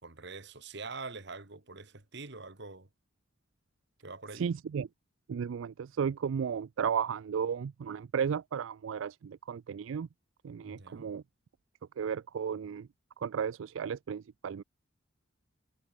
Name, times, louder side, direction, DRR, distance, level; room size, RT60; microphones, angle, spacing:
voice 1, 0.0-2.9 4.0-4.5 10.6-11.1, right 3 dB, 60° right, 2.4 m, -44 dB
voice 2, 4.4-4.9 5.3-10.1 10.4-11.2 12.0-12.9 13.2-14.6, right 7 dB, 80° right, 0.4 m, -34 dB
head